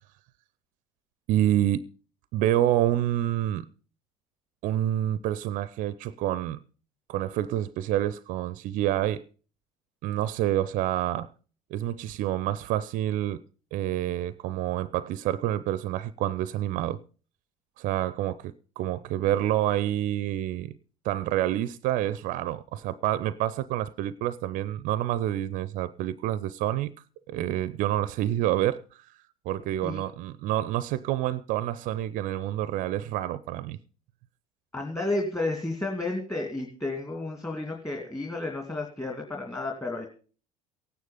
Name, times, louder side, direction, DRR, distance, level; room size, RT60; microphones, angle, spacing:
voice 1, 1.3-1.8 2.3-3.7 4.6-6.6 7.1-9.2 10.0-11.3 11.7-13.4 13.7-17.0 17.8-20.8 21.0-26.9 27.3-29.2 29.5-33.8, right 13 dB, 50° right, 0.5 m, -28 dB
voice 2, 34.7-40.1, left 2 dB, 15° left, 2.5 m, -32 dB
16.5 x 9.4 x 5.2 m
figure-of-eight pair, 60°, 18 cm